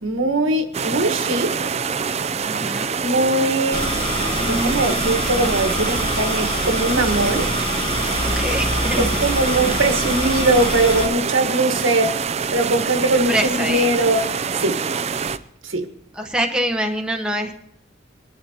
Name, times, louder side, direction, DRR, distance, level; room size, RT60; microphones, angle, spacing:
voice 1, 0.0-1.7 3.0-3.9 4.5-7.5 9.0-12.2 12.5-14.3 14.6-14.8 15.6-15.9, right 2 dB, 75° right, 1.4 m, -21 dB
sound 1, 0.7-15.4, right 6 dB, 30° right, 0.4 m, -25 dB
voice 2, 2.4-2.9 8.2-9.1 13.3-13.9 16.1-17.6, right 1 dB, 5° right, 0.9 m, -24 dB
sound 2, 3.7-11.1, left 2 dB, 25° left, 1.2 m, -25 dB
22.0 x 11.5 x 2.9 m
head